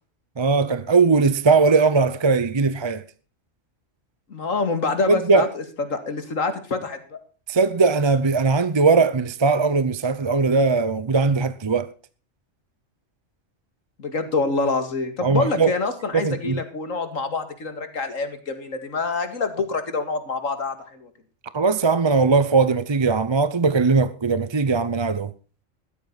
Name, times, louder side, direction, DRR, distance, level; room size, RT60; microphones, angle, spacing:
voice 1, 0.4-3.0 5.1-5.5 7.5-11.9 15.2-15.7 16.1-16.6 21.5-25.3, right 4 dB, 30° right, 0.5 m, -19 dB
voice 2, 4.3-5.6 5.9-7.2 14.0-21.1, left 3 dB, 85° left, 2.6 m, -26 dB
15.5 x 12.5 x 4.1 m
omnidirectional pair, 1.3 m